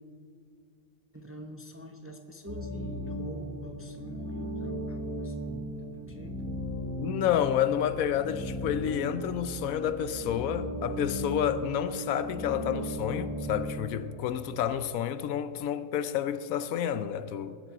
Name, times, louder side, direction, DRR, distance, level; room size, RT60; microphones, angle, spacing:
voice 1, 1.1-6.7, right 1 dB, 15° right, 0.6 m, -46 dB
sound 1, 2.5-14.2, equal, 80° right, 4.1 m, -36 dB
voice 2, 7.0-17.6, left 9 dB, 80° left, 1.0 m, -30 dB
20.5 x 7.4 x 4.8 m
omnidirectional pair, 1.5 m